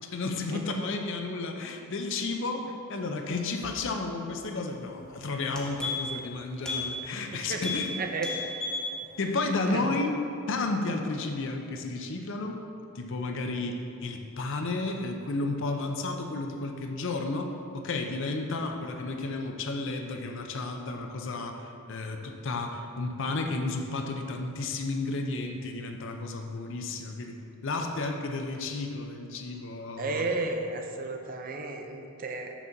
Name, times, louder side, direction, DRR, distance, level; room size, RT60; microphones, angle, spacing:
voice 1, 0.0-7.9 9.2-10.1 10.5-12.6 12.9-30.3, left 3 dB, 60° left, 4 dB, 0.6 m, -32 dB
sound 1, 4.9-5.1 5.4-6.2 6.6-6.9 7.2-7.3 7.6-7.9 8.2-8.9 9.3-9.4, left 4 dB, 5° left, 0.9 m, -33 dB
voice 2, 7.3-7.6 8.0-8.3 9.7-9.9 30.0-32.5, right 3 dB, 40° right, 3 dB, 0.5 m, -33 dB
6.0 x 6.0 x 4.0 m, 2.6 s
head